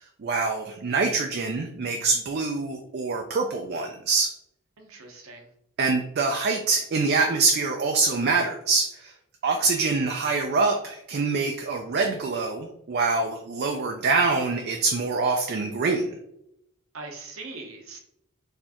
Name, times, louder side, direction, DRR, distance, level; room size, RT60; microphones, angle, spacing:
voice 1, 0.2-4.3 5.8-9.1 9.4-16.0, right 4 dB, 50° right, 3 dB, 0.4 m, -25 dB
voice 2, 4.8-5.4 16.9-18.0, right 3 dB, 75° right, 2 dB, 0.9 m, -41 dB
4.3 x 3.3 x 2.9 m, 0.78 s
head